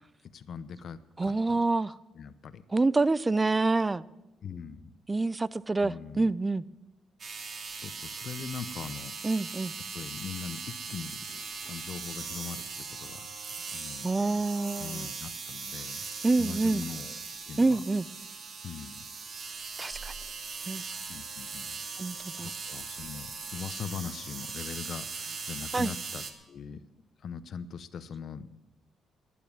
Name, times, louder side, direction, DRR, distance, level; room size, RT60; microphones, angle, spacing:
voice 1, 0.3-1.6 2.1-2.6 4.4-4.9 5.8-6.5 7.7-9.1 9.9-11.2 11.7-12.6 12.9-13.3 13.7-14.5 14.8-16.1 16.4-17.2 17.5-17.8 18.6-19.1 21.1-21.8 22.4-26.8 27.2-28.5, left 6 dB, 60° left, 0.8 m, -41 dB
voice 2, 1.2-1.9 2.7-4.1 5.1-6.6 9.2-9.7 14.0-15.1 16.2-16.8 17.6-18.1 19.8-20.1 20.7-20.8 22.0-22.5 25.7-25.9, right 3 dB, 20° right, 0.4 m, -27 dB
sound 1, 7.2-26.3, right 5 dB, 45° right, 1.5 m, -40 dB
11.5 x 10.0 x 7.3 m
cardioid pair, 90°, 0 cm